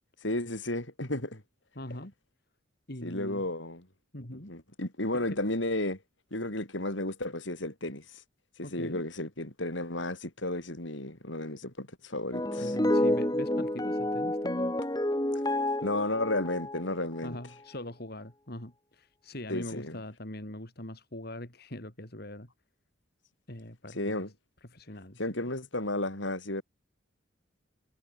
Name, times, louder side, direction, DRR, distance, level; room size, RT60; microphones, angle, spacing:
voice 1, 0.2-1.4 3.0-3.9 4.5-6.0 6.3-8.0 8.6-12.7 15.5-17.4 19.5-20.0 24.0-24.3 25.2-26.6, left 1 dB, 70° left, 5.0 m, -33 dB
voice 2, 1.8-2.1 2.9-3.4 4.1-4.5 5.1-5.4 8.6-9.0 12.6-14.8 17.2-22.5 23.5-24.3 24.6-25.2, left 1 dB, 50° left, 3.5 m, -42 dB
sound 1, 12.3-17.3, left 1 dB, 20° left, 1.9 m, -29 dB
head